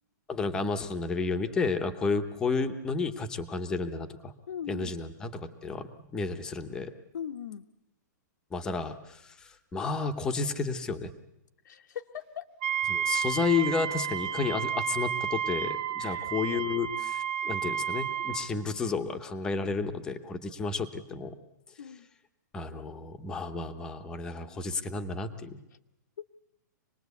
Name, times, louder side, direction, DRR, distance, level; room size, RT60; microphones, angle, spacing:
voice 1, 0.3-4.3 4.7-6.9 8.5-11.1 12.9-21.4 22.5-25.6, left 4 dB, 5° left, 8 dB, 0.8 m, -32 dB
voice 2, 4.5-4.9 7.1-7.7 11.6-12.5 16.0-16.3 18.3-18.4 21.8-22.1, left 8 dB, 75° left, 3 dB, 1.0 m, -40 dB
Wind instrument woodwind instrument, 12.6-18.5, right 8 dB, 30° right, 0.9 m, -31 dB
26.0 x 20.0 x 8.2 m, 0.88 s
hypercardioid pair, 180°, 10 cm